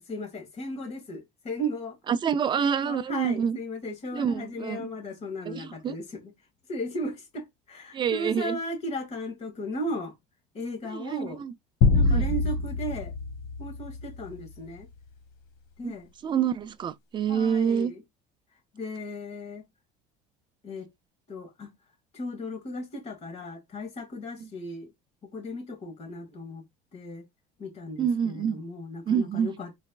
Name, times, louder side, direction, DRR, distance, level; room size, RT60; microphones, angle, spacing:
voice 1, 0.1-2.0 2.6-6.3 6.7-10.1 10.5-11.4 11.9-13.1 13.6-14.9 15.8-16.1 17.3-18.0 18.7-19.6 20.6-20.9 21.3-21.7 22.1-24.9 25.2-26.6 26.9-27.2 27.6-29.7, equal, 40° left, 1.7 m, -36 dB
voice 2, 2.1-3.6 4.1-4.9 5.5-6.0 7.9-8.6 10.9-11.5 12.0-12.3 15.8-15.9 16.2-17.9 24.4-24.5 28.0-28.6 29.1-29.5, right 8 dB, 25° right, 0.4 m, -27 dB
sound 1, 11.8-14.4, left 3 dB, 70° left, 1.3 m, -25 dB
4.1 x 3.1 x 2.4 m
supercardioid pair, 110°, 17 cm